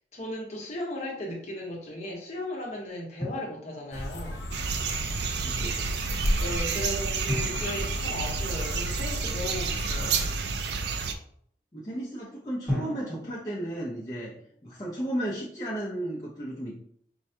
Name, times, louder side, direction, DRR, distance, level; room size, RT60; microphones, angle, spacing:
voice 1, 0.0-4.5 6.4-10.3, left 1 dB, 40° left, -2 dB, 1.0 m, -36 dB
Drum, 3.2-4.3 7.3-9.1 12.7-14.7, left 1 dB, ahead, 1.1 m, -37 dB
sound 1, 3.9-10.4, left 1 dB, 75° left, 0.6 m, -34 dB
sound 2, 4.5-11.1, right 5 dB, 70° right, 0.4 m, -30 dB
voice 2, 5.4-6.0 11.7-14.4 14.6-16.8, right 1 dB, 20° left, -8 dB, 0.6 m, -34 dB
4.6 x 2.2 x 2.7 m, 0.64 s
head